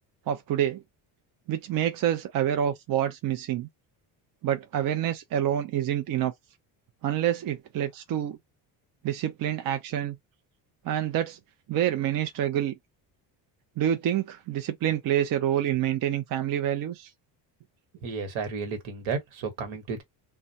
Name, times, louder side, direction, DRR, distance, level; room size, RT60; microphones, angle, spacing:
voice 1, 0.3-0.8 1.5-3.7 4.4-6.3 7.0-8.4 9.0-10.2 10.8-11.4 11.7-12.7 13.8-17.1, right 11 dB, 45° right, 0.5 m, -27 dB
voice 2, 18.0-20.0, right 5 dB, 70° right, 1.3 m, -32 dB
2.2 x 2.2 x 2.7 m
supercardioid pair, 80°, 50 cm